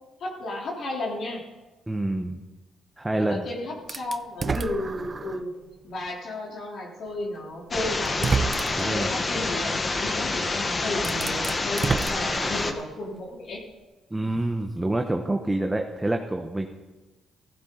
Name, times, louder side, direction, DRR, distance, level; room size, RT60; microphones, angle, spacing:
voice 1, 0.2-1.4 3.1-5.5 5.8-8.4 8.8-13.6, left 2 dB, 60° left, -2 dB, 3.5 m, -33 dB
voice 2, 1.9-2.4 3.0-3.5 8.8-9.1 14.1-16.7, right 1 dB, 15° right, 4 dB, 1.0 m, -27 dB
sound 1, 3.9-5.5 6.1-6.2 7.4-7.5 8.0-9.0 10.5-10.6 10.9-12.9, right 4 dB, 30° right, 0.6 m, -29 dB
sound 2, 7.7-12.7, left 3 dB, 30° left, 1.3 m, -27 dB
15.0 x 14.5 x 3.9 m, 1.2 s
cardioid pair, 90°, 0 cm